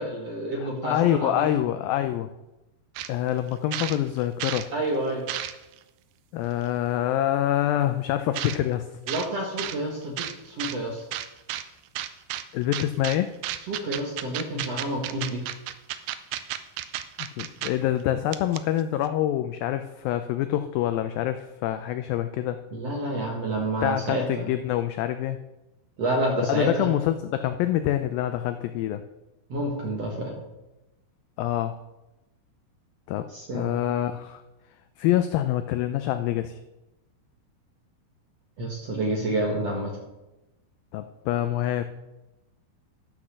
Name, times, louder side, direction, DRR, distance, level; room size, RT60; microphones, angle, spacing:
voice 1, 0.0-1.5 4.7-5.2 9.1-11.0 13.7-15.4 22.7-24.5 26.0-26.9 29.5-30.4 33.3-33.7 38.6-39.9, right 1 dB, 55° right, -1 dB, 1.8 m, -29 dB
voice 2, 0.6-2.3 3.1-4.7 6.3-8.9 12.5-13.3 17.4-22.6 23.8-25.4 26.5-29.0 31.4-31.8 33.1-33.2 33.5-34.4 35.0-36.6 40.9-41.9, left 12 dB, 90° left, 9 dB, 2.0 m, -26 dB
sound 1, 3.0-3.1 3.5-4.7 5.1-5.8 6.6-6.7 8.3-8.6 9.1-9.3 9.6-9.8 10.2-10.8 11.1-11.6 12.0-12.4 12.7-13.2 13.4-17.7 18.0-18.1 18.3-18.8, right 13 dB, 80° right, 2.3 m, -32 dB
12.0 x 6.1 x 6.5 m, 0.97 s
omnidirectional pair, 4.7 m